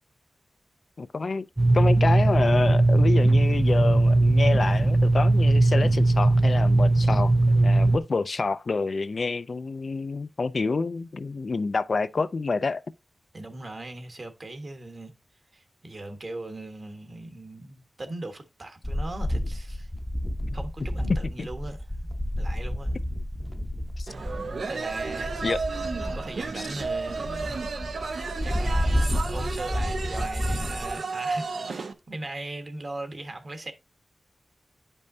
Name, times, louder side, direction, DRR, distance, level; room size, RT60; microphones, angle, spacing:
voice 1, 1.0-1.5 1.7-12.8 21.4-21.5 24.0-24.1 25.4-25.6 26.5-26.7, left 4 dB, 60° left, 0.3 m, -28 dB
sound 1, 1.6-8.0, right 2 dB, 20° right, 0.3 m, -19 dB
voice 2, 13.3-15.1 15.5-19.9 20.5-21.8 22.4-23.0 24.7-25.6 26.1-27.6 28.4-33.7, right 2 dB, 45° right, 1.3 m, -39 dB
sound 2, 18.8-30.9, equal, 10° left, 0.7 m, -30 dB
sound 3, 24.1-31.9, right 4 dB, 90° right, 0.8 m, -32 dB
10.5 x 5.4 x 2.7 m
wide cardioid pair, 105°, 0 cm